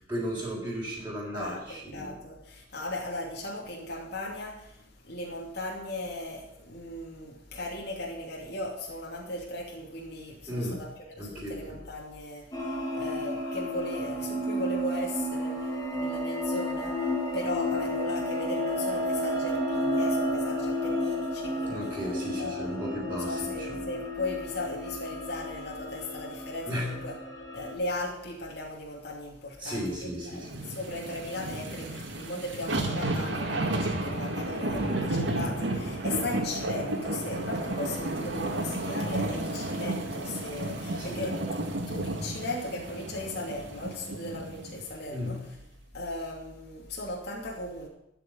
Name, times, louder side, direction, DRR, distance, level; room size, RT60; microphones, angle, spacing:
voice 1, 0.1-2.1 10.5-10.8 11.2-11.8 21.7-23.7 26.7-26.9 29.6-30.6 40.9-41.3 45.1-45.4, equal, 10° right, 3.9 m, -35 dB
voice 2, 1.3-22.0 22.4-27.2 27.5-41.5 41.9-45.5 45.9-47.9, left 1 dB, 60° left, 2.8 m, -37 dB
sound 1, 12.5-27.7, left 1 dB, 20° left, 2.4 m, -32 dB
sound 2, 30.4-44.8 45.3-45.4, right 1 dB, 90° right, 2.1 m, -32 dB
13.0 x 6.3 x 9.3 m
head